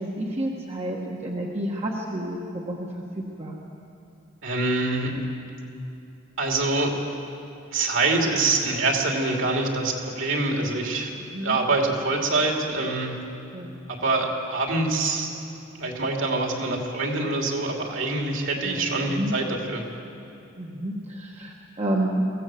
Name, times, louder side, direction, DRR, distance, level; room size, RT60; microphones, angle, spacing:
voice 1, 0.0-2.9 3.1-3.6 11.2-11.6 13.5-13.7 18.6-19.3 20.6-22.3, right 1 dB, 30° right, -2 dB, 1.4 m, -30 dB
voice 2, 4.4-5.1 6.4-6.9 7.7-11.1 11.4-13.2 13.9-15.3 15.8-19.9, right 3 dB, 60° right, 1 dB, 3.1 m, -25 dB
23.0 x 16.5 x 7.8 m, 2.7 s
head